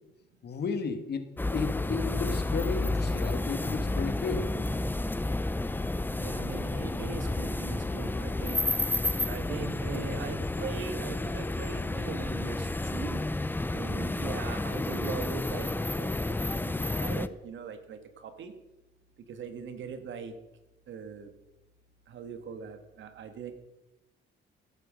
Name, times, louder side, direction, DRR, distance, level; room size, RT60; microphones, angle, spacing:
voice 1, 0.4-4.5, left 4 dB, 55° left, 8 dB, 2.0 m, -34 dB
sound 1, 1.4-17.3, left 2 dB, 10° left, 0.7 m, -31 dB
voice 2, 6.2-8.6 9.3-13.2 13.7-15.7 16.0-16.4 16.6-18.5 19.3-20.3 20.9-21.3 22.1-23.5, right 6 dB, 70° right, 8 dB, 2.2 m, -40 dB
16.5 x 9.5 x 6.5 m, 1.0 s
cardioid pair, 90°, 20 cm